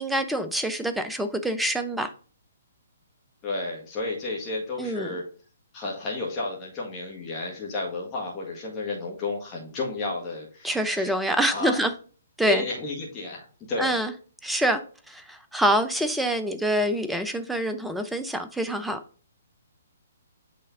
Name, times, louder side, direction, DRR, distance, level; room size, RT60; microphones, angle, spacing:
voice 1, 0.0-2.1 4.8-5.1 10.6-11.9 12.4-12.6 13.8-14.1 14.4-14.8 15.1-19.0, right 1 dB, 5° right, 9 dB, 0.6 m, -26 dB
voice 2, 3.4-5.2 5.7-11.1 11.5-11.8 12.4-14.0, left 3 dB, 25° left, -2 dB, 1.7 m, -32 dB
8.4 x 3.1 x 3.6 m, 0.40 s
figure-of-eight pair, 130°, 0 cm